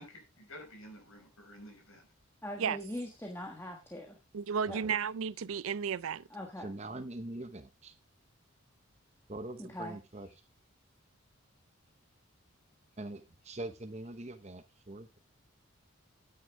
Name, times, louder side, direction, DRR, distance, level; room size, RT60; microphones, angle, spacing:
voice 1, 0.0-2.1, equal, 80° left, 5.1 m, -51 dB
voice 2, 2.4-4.2 4.7-4.8 6.3-6.7 9.6-10.0, left 1 dB, 10° left, 1.4 m, -41 dB
voice 3, 4.3-6.3, right 7 dB, 80° right, 0.5 m, -33 dB
voice 4, 6.6-7.9 9.3-10.3 13.0-15.2, right 2 dB, 30° right, 0.9 m, -43 dB
9.6 x 9.4 x 3.4 m
head